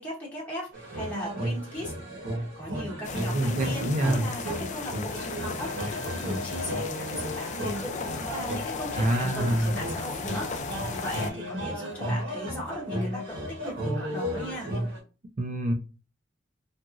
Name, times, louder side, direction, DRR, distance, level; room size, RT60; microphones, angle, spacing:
voice 1, 0.0-1.9 2.6-8.0 8.3-10.5 10.9-13.4 13.6-14.7, equal, 10° left, -5 dB, 0.7 m, -37 dB
sound 1, 0.7-15.0, equal, 70° right, 1.0 m, -34 dB
sound 2, 3.0-11.3, left 5 dB, 40° left, 0.3 m, -36 dB
voice 2, 3.3-4.3 8.9-9.7 15.4-15.7, right 1 dB, 45° right, 4 dB, 0.5 m, -25 dB
2.9 x 2.5 x 2.4 m, 0.32 s
head